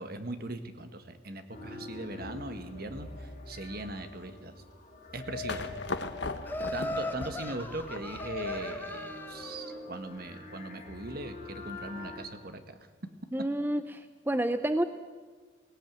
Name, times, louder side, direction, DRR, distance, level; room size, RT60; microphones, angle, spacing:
voice 1, 0.0-4.5 5.1-5.7 6.7-12.8, right 2 dB, 50° right, 9 dB, 1.6 m, -40 dB
sound 1, 1.5-12.2, left 2 dB, 35° left, 6.1 m, -43 dB
sound 2, 5.5-8.5, left 3 dB, 60° left, 1.2 m, -38 dB
Laughter, 6.5-9.7, left 2 dB, 10° left, 0.9 m, -38 dB
voice 2, 13.3-14.8, right 1 dB, 10° right, 10 dB, 0.5 m, -29 dB
18.0 x 17.5 x 9.3 m, 1.5 s
head